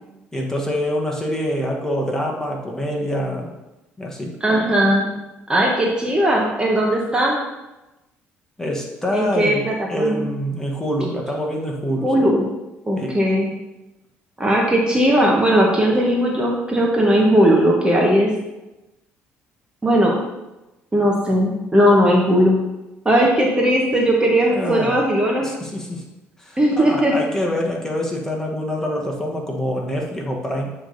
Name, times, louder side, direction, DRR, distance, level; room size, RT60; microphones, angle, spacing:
voice 1, 0.3-3.5 4.0-4.3 8.6-12.1 13.0-13.2 24.5-25.0 25.4-26.0 26.4-30.7, equal, 10° left, -1 dB, 1.5 m, -25 dB
voice 2, 4.4-5.1 5.5-7.4 9.1-10.2 12.0-12.5 12.9-13.5 14.4-18.3 19.8-20.1 20.9-22.6 23.0-25.5 26.6-27.1, equal, 20° right, -2 dB, 1.2 m, -18 dB
8.9 x 3.4 x 4.0 m, 1.0 s
supercardioid pair, 85°, 5 cm